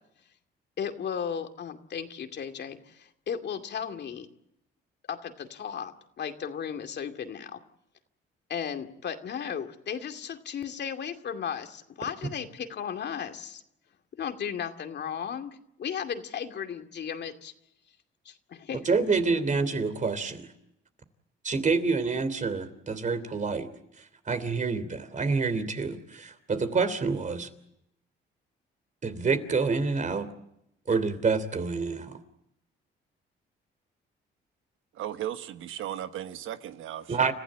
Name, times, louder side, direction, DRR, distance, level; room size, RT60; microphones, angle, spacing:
voice 1, 0.8-4.3 5.1-7.6 8.5-13.6 14.1-17.5 18.2-18.8, left 7 dB, 60° left, 2.4 m, -35 dB
voice 2, 18.8-20.5 21.4-23.7 24.0-27.5 29.0-30.3 30.9-32.2 37.1-37.3, right 4 dB, 40° right, 3.1 m, -27 dB
voice 3, 34.9-37.3, right 11 dB, 85° right, 1.3 m, -36 dB
30.0 x 15.5 x 8.8 m
cardioid pair, 90°, 20 cm